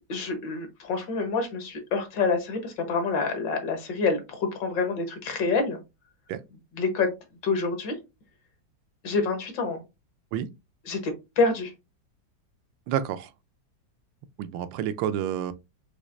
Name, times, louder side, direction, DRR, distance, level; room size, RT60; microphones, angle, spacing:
voice 1, 0.1-5.8 6.7-7.1 7.4-8.0 9.0-9.8 10.9-11.7, left 4 dB, 70° left, 1.7 m, -27 dB
voice 2, 12.9-13.3 14.4-15.5, right 10 dB, 80° right, 1.3 m, -29 dB
6.2 x 2.8 x 2.6 m
omnidirectional pair, 2.1 m